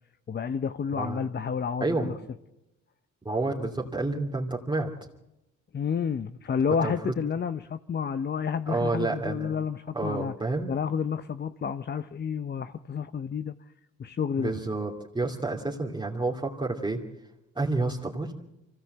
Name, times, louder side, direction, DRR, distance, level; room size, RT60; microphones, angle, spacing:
voice 1, 0.3-2.1 5.7-10.3 10.7-13.5 14.0-14.5, left 6 dB, 35° left, 12 dB, 0.8 m, -30 dB
voice 2, 1.8-2.1 3.2-4.9 6.8-7.1 8.7-9.5 9.9-10.7 14.4-17.0 17.5-18.3, right 3 dB, 15° right, -2 dB, 2.7 m, -29 dB
24.5 x 17.5 x 7.9 m, 0.92 s
cardioid pair, 90°, 30 cm